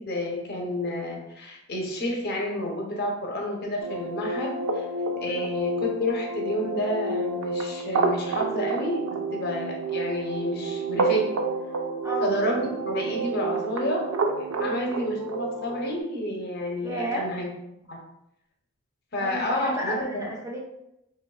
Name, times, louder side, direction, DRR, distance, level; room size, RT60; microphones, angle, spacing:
voice 1, 0.0-4.8 5.1-11.3 12.2-12.6 12.9-14.1 14.4-17.5 17.9-18.0 19.1-20.3, left 1 dB, 50° left, 0 dB, 0.6 m, -30 dB
sound 1, 3.8-16.0, right 3 dB, 85° right, 0.4 m, -29 dB
voice 2, 14.6-14.9 16.8-17.3 19.2-20.6, equal, 15° right, -3 dB, 0.4 m, -32 dB
3.3 x 2.2 x 2.3 m, 0.84 s
head